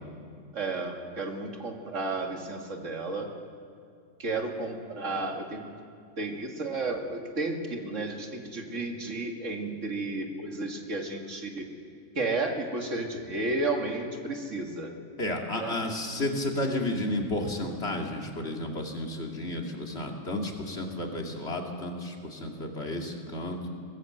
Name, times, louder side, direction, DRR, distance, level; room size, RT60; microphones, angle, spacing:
voice 1, 0.5-3.3 4.2-5.7 6.2-11.7 12.2-14.9 15.6-15.8, right 2 dB, 70° right, 2 dB, 2.4 m, -32 dB
voice 2, 15.2-23.7, left 1 dB, 55° left, 1 dB, 2.6 m, -32 dB
22.5 x 17.5 x 7.9 m, 2.4 s
omnidirectional pair, 1.3 m